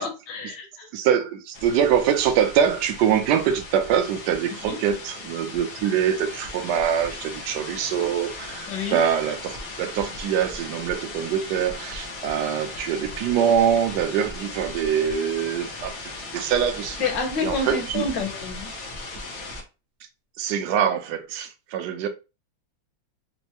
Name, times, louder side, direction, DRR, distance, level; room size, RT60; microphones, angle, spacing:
voice 1, 0.0-0.9 4.6-4.8 8.7-9.0 17.0-18.7, left 4 dB, 65° left, 1.5 m, -29 dB
voice 2, 0.9-17.0 17.4-18.1 20.4-22.1, right 8 dB, 70° right, 1.0 m, -24 dB
sound 1, 1.5-19.6, left 2 dB, 85° left, 0.6 m, -37 dB
4.5 x 2.1 x 2.8 m
omnidirectional pair, 2.4 m